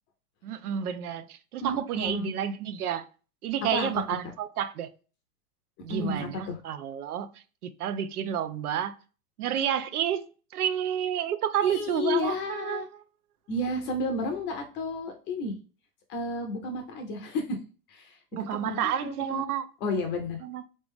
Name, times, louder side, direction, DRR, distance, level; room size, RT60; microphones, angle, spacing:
voice 1, 0.4-3.1 3.4-4.9 5.8-9.0 9.4-12.8 18.3-19.7 20.4-20.7, right 9 dB, 85° right, 0.7 m, -30 dB
voice 2, 1.6-2.3 3.7-3.9 5.9-6.6 11.6-12.9 13.5-15.6 16.1-17.6 17.9-18.2 18.7-19.4 19.8-20.4, left 2 dB, 25° left, 0.6 m, -32 dB
3.9 x 3.3 x 3.3 m
hypercardioid pair, 140°, 44 cm